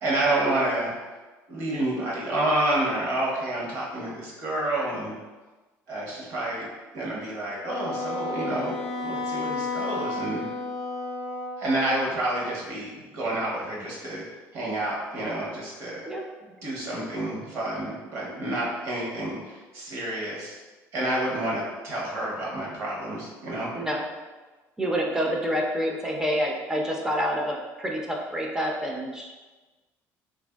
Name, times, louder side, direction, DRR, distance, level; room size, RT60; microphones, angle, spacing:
voice 1, 0.0-0.9 1.5-5.1 5.9-6.7 6.9-10.4 11.6-14.2 14.5-16.1 16.4-20.6 20.9-23.7, right 1 dB, 55° right, -4 dB, 1.0 m, -29 dB
Wind instrument woodwind instrument, 7.6-12.1, left 2 dB, 75° left, 0.5 m, -32 dB
voice 2, 24.8-29.3, equal, 10° right, 0 dB, 0.4 m, -27 dB
3.7 x 2.5 x 2.2 m, 1.2 s
cardioid pair, 145°, 6 cm